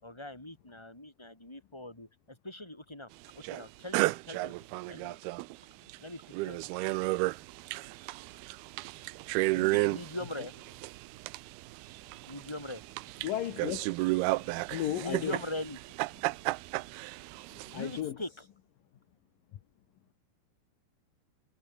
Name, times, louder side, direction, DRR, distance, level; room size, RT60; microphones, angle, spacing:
voice 1, 0.0-3.1 3.3-4.6 4.9-5.2 6.0-7.0 9.4-10.5 12.3-12.8 14.9-15.8 17.7-18.4, left 1 dB, 5° left, 5.9 m, -41 dB
sound 1, 3.4-3.6 3.9-5.6 5.9-6.0 6.2-18.0, right 22 dB, 80° right, 2.4 m, -33 dB
voice 2, 13.2-13.9 14.7-15.4 17.7-18.2, left 12 dB, 65° left, 2.9 m, -34 dB
omnidirectional pair, 4.7 m